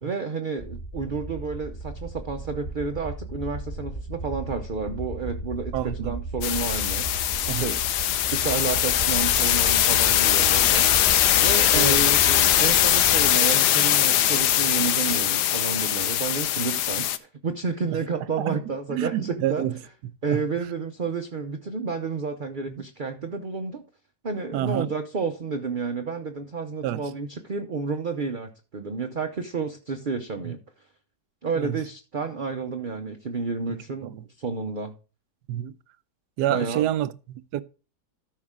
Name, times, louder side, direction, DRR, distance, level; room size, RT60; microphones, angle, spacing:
voice 1, 0.0-7.8 8.3-10.9 11.4-19.7 20.2-23.8 24.2-30.6 31.4-34.9 36.5-36.9, right 4 dB, 45° right, 0.7 m, -31 dB
sound 1, 0.6-13.3, right 2 dB, 35° left, 1.7 m, -35 dB
voice 2, 5.7-6.1 7.5-7.7 11.7-12.0 17.9-18.0 18.4-18.6 18.9-19.8 20.3-20.4 22.7-22.8 24.5-24.9 26.8-27.0 30.4-30.5 31.5-31.8 33.7-34.2 35.5-35.7 36.4-37.6, right 12 dB, 80° right, 1.2 m, -28 dB
sound 2, 6.4-17.2, left 11 dB, 75° left, 1.2 m, -21 dB
13.5 x 5.7 x 3.6 m
omnidirectional pair, 1.8 m